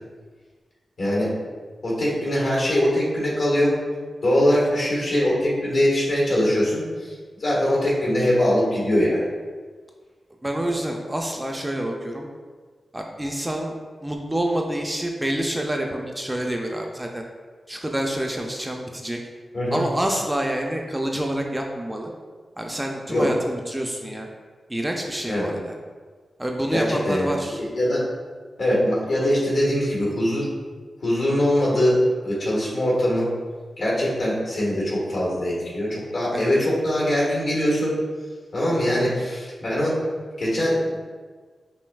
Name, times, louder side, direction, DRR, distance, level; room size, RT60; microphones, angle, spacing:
voice 1, 1.0-1.3 1.8-3.8 4.2-7.1 7.4-9.2 19.5-19.8 23.1-23.3 25.3-25.5 26.7-27.3 27.6-28.0 28.6-30.5 31.0-33.3 33.8-37.9 38.5-40.0 40.4-41.0, equal, 70° left, -5 dB, 1.4 m, -22 dB
voice 2, 10.4-12.3 12.9-13.8 14.0-17.3 17.7-19.2 19.7-22.1 22.6-24.3 24.7-25.8 26.4-27.6 36.3-36.5, right 1 dB, 10° right, 1 dB, 0.3 m, -27 dB
5.3 x 2.6 x 2.3 m, 1.5 s
wide cardioid pair, 115°, 0 cm